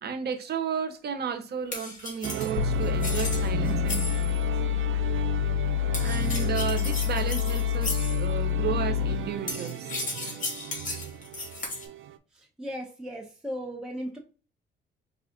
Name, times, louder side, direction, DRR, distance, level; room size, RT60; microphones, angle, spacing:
voice 1, 0.0-4.5 6.0-9.9, right 7 dB, 55° right, 0.9 m, -33 dB
sound 1, 1.7-4.4 5.9-8.2 9.5-11.9, left 2 dB, 40° left, 2.0 m, -35 dB
sound 2, 2.2-12.2, right 11 dB, 80° right, 0.5 m, -35 dB
sound 3, 2.6-9.4, left 13 dB, 65° left, 0.5 m, -27 dB
voice 2, 12.3-14.2, equal, 5° right, 1.0 m, -36 dB
4.9 x 2.4 x 3.7 m
cardioid pair, 90°, 20 cm